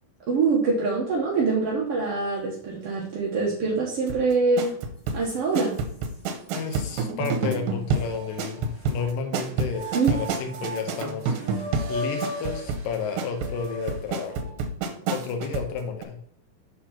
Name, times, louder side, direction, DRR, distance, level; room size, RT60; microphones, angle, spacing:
voice 1, 0.3-4.7 5.1-5.8 9.9-10.2, right 4 dB, 60° right, -4 dB, 1.6 m, -24 dB
sound 1, 4.1-15.7 16.0-16.1, right 4 dB, 75° right, 2.6 m, -29 dB
sound 2, 4.6-4.7 5.2-6.1 6.8-6.9 8.0-9.1 9.7-14.6, equal, 45° left, 0.5 m, -37 dB
voice 2, 6.5-11.4 11.9-14.5 15.1-16.2, left 5 dB, 70° left, 4 dB, 2.7 m, -32 dB
6.9 x 4.2 x 5.7 m, 0.65 s
omnidirectional pair, 4.3 m